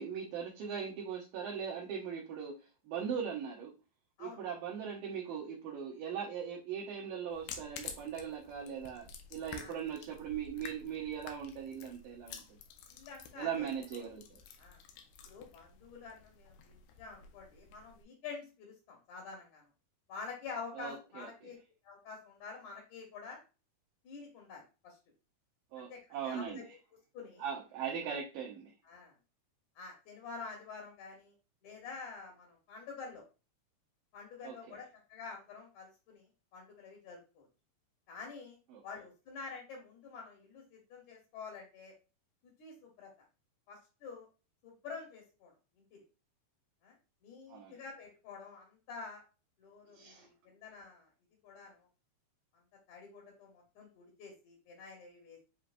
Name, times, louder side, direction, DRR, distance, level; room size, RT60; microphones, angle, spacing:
voice 1, 0.0-2.6 2.9-3.7 4.2-12.4 13.4-14.4 20.8-21.3 25.7-26.6 27.4-28.7 34.4-34.5 38.7-38.8 47.5-47.8 49.9-50.3, right 7 dB, 75° right, -3 dB, 2.2 m, -40 dB
sound 1, 7.3-18.0, left 7 dB, 85° left, 2.6 m, -51 dB
voice 2, 12.9-14.1 14.6-14.8 15.3-19.6 20.1-21.6 21.8-23.4 24.0-25.0 25.8-26.0 26.2-26.8 27.1-27.4 28.8-29.2 29.8-31.3 31.6-33.2 34.1-37.5 38.1-38.6 38.8-41.9 42.4-43.1 43.7-44.3 44.6-45.5 45.8-46.0 46.8-47.0 47.2-49.2 49.6-51.1 51.4-51.9 52.9-55.4, left 4 dB, 65° left, 0 dB, 1.9 m, -48 dB
7.4 x 2.8 x 2.5 m, 0.31 s
omnidirectional pair, 4.6 m